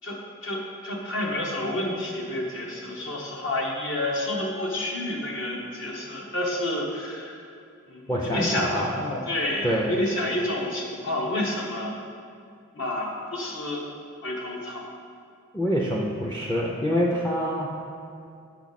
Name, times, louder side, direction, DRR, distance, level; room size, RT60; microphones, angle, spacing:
voice 1, 0.0-7.5 7.9-8.9 9.2-11.9 12.7-13.9 14.2-14.8, left 1 dB, 60° left, -1 dB, 1.1 m, -29 dB
voice 2, 8.1-9.2 9.6-9.9 15.5-17.7, equal, 10° left, -3 dB, 0.4 m, -26 dB
6.3 x 6.0 x 4.1 m, 2.4 s
head